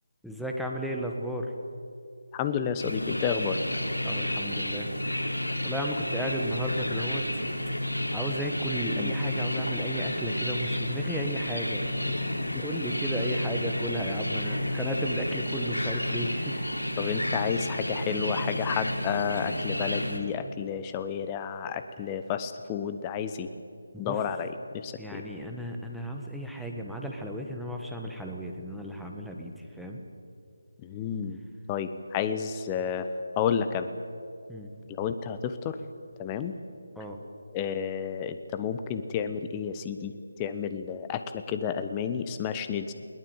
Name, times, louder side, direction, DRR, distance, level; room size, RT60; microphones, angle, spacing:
voice 1, 0.2-1.5 4.0-4.9 5.6-7.3 8.1-12.1 12.6-16.7 17.0-17.2 23.9-24.2 25.0-30.0 34.5-34.7 36.9-37.2, equal, ahead, 0 dB, 1.5 m, -34 dB
voice 2, 2.3-3.6 9.0-9.1 17.0-23.5 24.0-25.2 30.8-31.4 31.7-33.1 33.4-33.9 34.9-35.8 36.2-36.5 37.5-40.1 40.4-42.9, left 7 dB, 15° left, 10 dB, 1.0 m, -31 dB
sound 1, 2.8-20.2, left 1 dB, 85° left, 3.5 m, -31 dB
21.5 x 19.0 x 8.1 m, 2.5 s
figure-of-eight pair, 155°, 0 cm